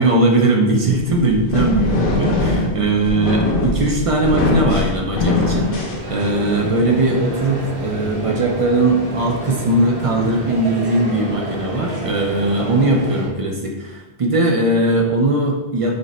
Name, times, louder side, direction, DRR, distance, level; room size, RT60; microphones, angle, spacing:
voice 1, 0.0-15.9, right 2 dB, 45° right, 0 dB, 0.4 m, -19 dB
sound 1, 0.9-6.6, left 2 dB, 60° left, 0.9 m, -21 dB
sound 2, 5.3-13.3, right 1 dB, 80° right, 1.4 m, -29 dB
5.0 x 2.1 x 4.1 m, 1.1 s
omnidirectional pair, 1.1 m